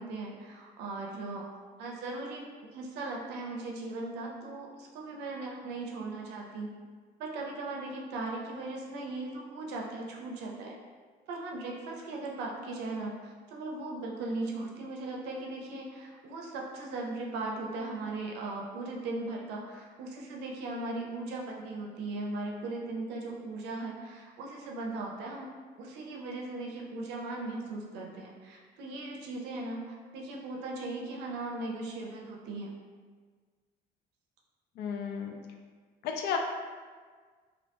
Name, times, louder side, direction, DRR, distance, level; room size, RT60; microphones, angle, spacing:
voice 1, 0.0-1.5 1.8-6.7 7.2-10.8 11.3-25.5 25.8-32.7, right 2 dB, 85° right, -1 dB, 0.5 m, -38 dB
voice 2, 34.8-35.4 36.0-36.4, left 7 dB, 75° left, 3 dB, 0.4 m, -33 dB
2.6 x 2.1 x 2.8 m, 1.5 s
cardioid pair, 110°, 17 cm